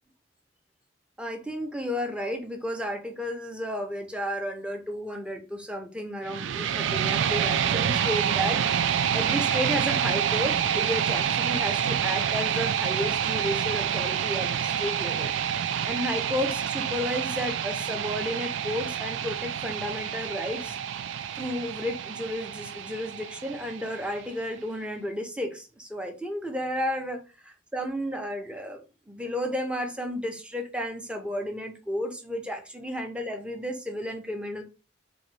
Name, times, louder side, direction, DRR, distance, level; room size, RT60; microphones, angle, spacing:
voice 1, 1.2-8.6 8.9-15.3 15.9-20.8 21.3-28.8 29.1-34.6, equal, 5° right, 3 dB, 0.6 m, -32 dB
sound 1, 6.2-24.3, right 8 dB, 70° right, 0.3 m, -28 dB
3.9 x 2.6 x 3.1 m, 0.31 s
head